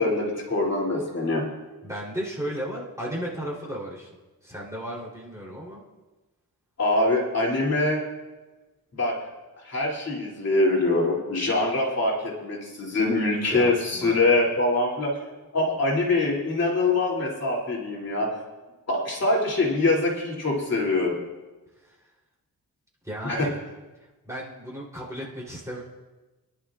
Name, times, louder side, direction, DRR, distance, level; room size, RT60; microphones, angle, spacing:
voice 1, 0.0-1.4 6.8-8.0 8.9-9.2 9.6-15.1 15.5-18.3 18.9-21.2 23.2-23.5, left 2 dB, 45° left, -4 dB, 2.9 m, -24 dB
voice 2, 1.8-4.1 4.4-5.8 13.5-14.2 21.8-22.0 23.0-23.5 24.0-25.8, equal, 10° right, -5 dB, 3.4 m, -35 dB
25.0 x 11.0 x 2.5 m, 1.2 s
wide cardioid pair, 125°, 35 cm